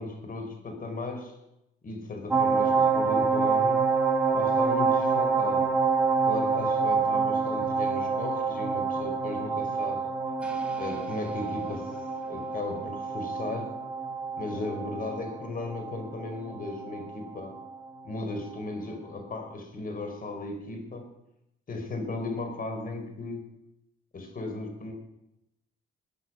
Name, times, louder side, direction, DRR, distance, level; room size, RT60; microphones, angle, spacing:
voice 1, 0.0-1.3 1.8-3.8 4.3-5.7 6.3-10.1 10.8-11.9 12.3-13.8 14.4-17.5 18.0-21.1 21.7-23.4 24.1-24.9, left 2 dB, 45° left, 4 dB, 5.0 m, -36 dB
sound 1, 2.3-17.9 18.2-18.3, right 5 dB, 5° right, 3.4 m, -27 dB
21.0 x 9.8 x 6.4 m, 0.86 s
cardioid pair, 90°, 20 cm